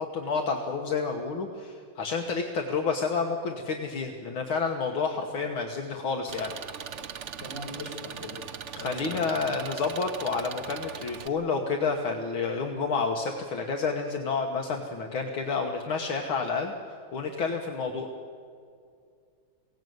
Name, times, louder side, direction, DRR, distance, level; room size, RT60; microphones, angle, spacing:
voice 1, 0.0-6.5 8.7-16.7 17.1-18.1, left 4 dB, 70° left, 2 dB, 2.1 m, -29 dB
Engine, 6.3-11.3, right 7 dB, 90° right, 0.6 m, -40 dB
voice 2, 7.4-8.4 8.8-9.4, left 1 dB, 35° left, -1 dB, 5.2 m, -39 dB
22.0 x 17.5 x 9.4 m, 2.3 s
omnidirectional pair, 2.3 m